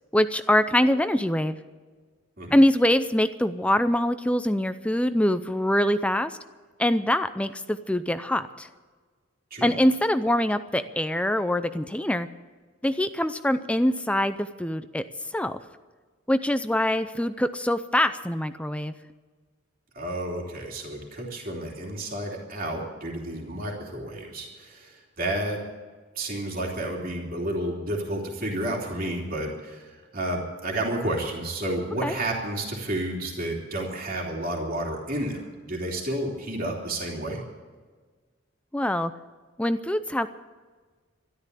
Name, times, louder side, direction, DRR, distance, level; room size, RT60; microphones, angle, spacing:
voice 1, 0.1-1.6 2.5-6.4 6.8-8.7 9.6-12.3 12.8-15.0 15.3-15.6 16.3-18.9 32.0-32.1 38.7-39.1 39.6-40.3, left 1 dB, 5° left, 11 dB, 0.5 m, -24 dB
voice 2, 19.9-25.6 26.1-37.4, right 1 dB, 45° right, -1 dB, 3.2 m, -31 dB
13.0 x 12.5 x 8.3 m, 1.4 s
head